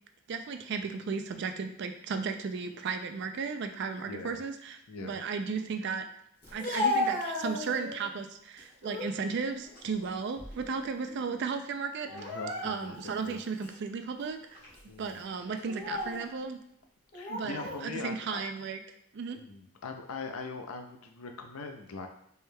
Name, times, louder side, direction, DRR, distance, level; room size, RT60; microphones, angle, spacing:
voice 1, 0.3-6.0 6.5-12.1 12.6-14.6 15.0-16.6 17.3-18.8 19.1-19.4, right 5 dB, 50° right, 7 dB, 0.3 m, -35 dB
voice 2, 4.1-4.4 4.9-5.2 12.1-13.4 14.9-15.2 17.1-18.4 19.3-22.1, left 4 dB, 80° left, 5 dB, 0.5 m, -41 dB
Speech, 6.4-8.1 8.6-9.1 9.6-10.8 11.1-11.3 12.1-13.1 13.6-13.7 14.5-14.8 15.6-16.3 17.1-17.8, left 2 dB, 45° left, 1.4 m, -34 dB
4.5 x 3.3 x 2.2 m, 0.72 s
head